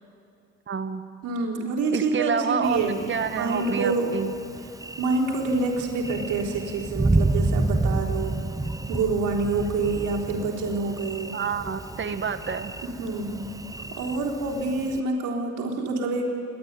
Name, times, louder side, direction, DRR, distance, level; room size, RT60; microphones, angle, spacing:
voice 1, 0.7-1.0 1.9-4.3 11.3-12.7, right 6 dB, 40° right, 9 dB, 1.4 m, -28 dB
voice 2, 1.2-3.1 3.4-4.2 5.0-8.4 8.9-11.3 12.8-13.5 13.9-16.3, right 3 dB, 90° right, -1 dB, 3.8 m, -27 dB
Thunder, 2.6-15.0, right 2 dB, 10° right, 0.8 m, -30 dB
28.5 x 12.5 x 9.7 m, 2.6 s
cardioid pair, 90°, 30 cm